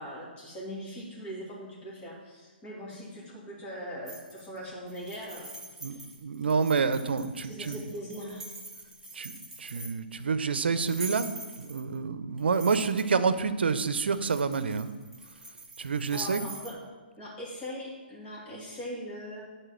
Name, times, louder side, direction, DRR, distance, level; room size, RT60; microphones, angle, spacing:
voice 1, 0.0-5.5 5.9-6.1 7.4-8.4 11.9-12.0 16.1-16.8 17.2-19.4, equal, 20° left, -6 dB, 2.8 m, -40 dB
sound 1, 4.1-4.6 4.9-10.1 10.7-12.0 12.4-13.1 14.1-16.7, right 2 dB, 5° right, 1.3 m, -45 dB
voice 2, 5.8-7.8 9.1-11.3 11.6-14.9 15.8-16.4, right 5 dB, 80° right, 12 dB, 0.7 m, -28 dB
9.9 x 4.5 x 7.4 m, 1.3 s
hypercardioid pair, 140°, 6 cm